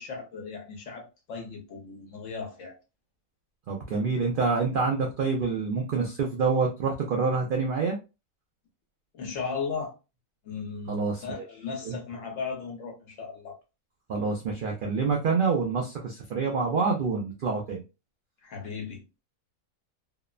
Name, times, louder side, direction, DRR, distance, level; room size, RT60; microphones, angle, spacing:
voice 1, 0.0-2.8 9.1-9.9 10.4-13.5 18.4-19.2, left 5 dB, 65° left, 1.1 m, -36 dB
voice 2, 3.7-8.0 10.9-11.4 11.8-12.0 14.1-17.8, right 4 dB, 85° right, 0.4 m, -27 dB
2.8 x 2.0 x 2.3 m
omnidirectional pair, 1.5 m